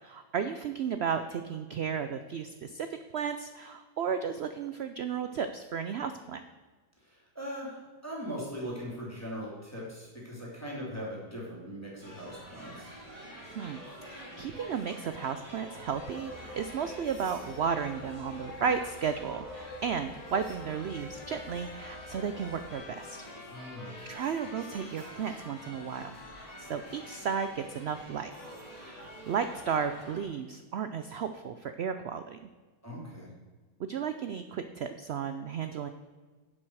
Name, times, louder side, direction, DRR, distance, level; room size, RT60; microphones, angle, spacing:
voice 1, 0.0-2.9 3.1-6.4 13.5-23.3 24.1-28.3 29.3-32.4 33.8-35.9, right 7 dB, 75° right, 9 dB, 0.6 m, -34 dB
voice 2, 7.0-12.9 23.5-24.0 32.8-33.3, equal, 10° left, -5 dB, 2.9 m, -40 dB
sound 1, 12.0-30.2, equal, 25° right, 2.9 m, -48 dB
sound 2, 15.8-22.7, left 1 dB, 30° left, 0.9 m, -47 dB
Trumpet, 18.9-27.3, left 5 dB, 75° left, 1.5 m, -52 dB
11.0 x 7.4 x 4.7 m, 1.4 s
omnidirectional pair, 1.7 m